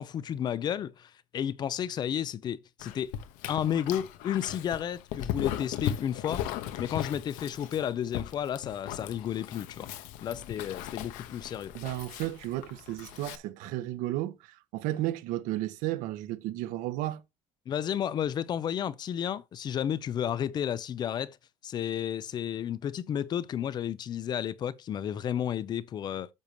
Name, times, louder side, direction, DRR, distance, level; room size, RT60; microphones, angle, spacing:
voice 1, 0.0-3.1 3.5-6.4 6.8-9.9 10.2-11.7 17.7-21.4 21.6-26.3, left 9 dB, 30° left, 0.6 m, -32 dB
Dog, 2.8-13.4, left 11 dB, 75° left, 1.0 m, -38 dB
voice 2, 11.7-17.2, right 15 dB, 70° right, 1.2 m, -33 dB
10.5 x 6.8 x 3.0 m
cardioid pair, 165°, 14 cm